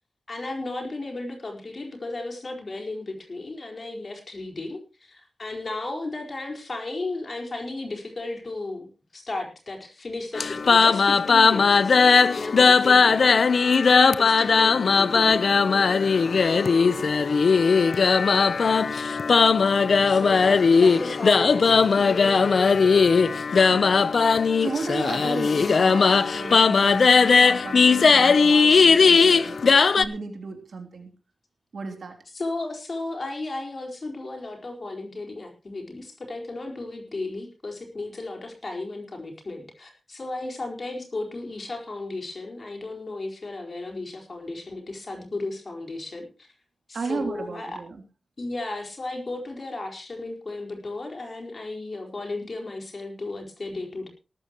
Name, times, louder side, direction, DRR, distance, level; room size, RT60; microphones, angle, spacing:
voice 1, 0.3-13.4 14.2-15.5 20.1-23.2 32.3-46.5 46.9-47.8 48.4-54.1, left 2 dB, 45° left, 2 dB, 4.7 m, -34 dB
sound 1, 10.3-30.1, left 5 dB, 70° left, 0.7 m, -18 dB
voice 2, 24.6-31.1 31.7-32.2 46.9-48.0, right 4 dB, 75° right, 4 dB, 3.3 m, -35 dB
18.0 x 13.5 x 3.1 m, 0.30 s
wide cardioid pair, 90°, 0 cm